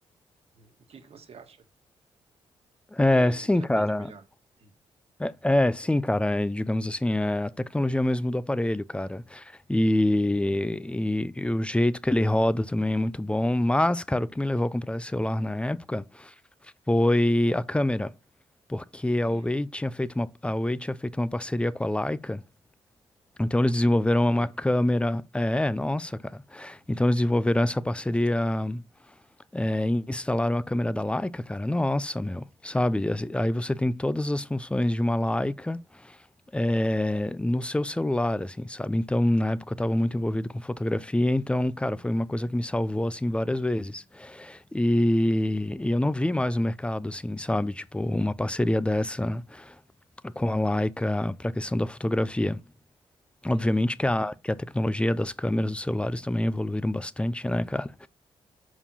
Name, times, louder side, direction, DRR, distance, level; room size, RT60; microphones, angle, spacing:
voice 1, 0.5-1.6 3.1-3.5 3.7-4.2 4.6-4.7 19.1-19.6 23.6-24.0 24.3-24.5 26.8-27.1 53.5-53.9, right 5 dB, 55° right, 1.5 m, -50 dB
voice 2, 2.9-4.1 5.2-16.3 16.9-18.1 18.7-22.4 23.4-28.8 29.5-36.2 36.5-49.8 50.2-52.6 53.4-58.1, left 1 dB, 10° left, 0.5 m, -26 dB
5.3 x 4.8 x 5.6 m
supercardioid pair, 55°, 12 cm